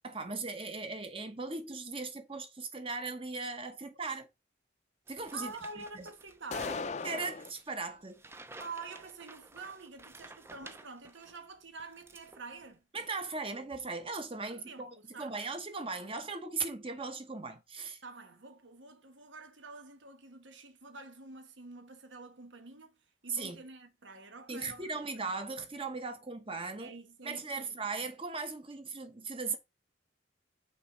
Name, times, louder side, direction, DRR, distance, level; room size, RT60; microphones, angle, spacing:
voice 1, 0.0-4.3 5.1-6.1 7.0-8.2 12.9-18.0 23.3-23.6 24.5-26.9 27.2-29.6, right 4 dB, 30° right, 1.1 m, -38 dB
sound 1, 5.1-11.5 11.8-12.7, right 2 dB, 15° right, 0.5 m, -53 dB
voice 2, 5.3-7.0 8.6-12.8 14.5-15.4 18.0-23.0 23.2-25.1 26.8-28.1, right 3 dB, 75° right, 1.4 m, -48 dB
sound 2, 6.5-7.5, left 4 dB, 35° left, 0.5 m, -37 dB
6.0 x 4.3 x 5.1 m
head